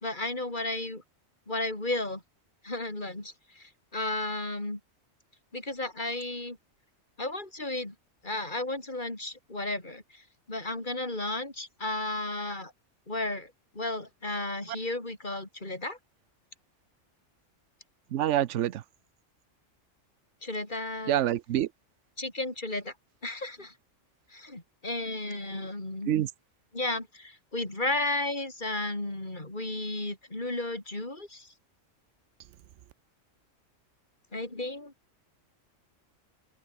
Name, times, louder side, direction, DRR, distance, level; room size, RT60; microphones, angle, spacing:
voice 1, 0.0-1.0 1.5-2.2 2.6-4.8 5.5-6.6 7.2-7.9 8.2-10.2 10.5-12.7 13.1-16.0 20.4-21.2 22.2-22.9 23.2-23.7 24.3-26.2 26.7-31.5 34.3-34.9, left 2 dB, 40° left, 4.8 m, -33 dB
voice 2, 18.1-18.8 21.1-21.7 26.1-26.3, right 12 dB, 70° right, 1.0 m, -26 dB
open air
omnidirectional pair, 1.3 m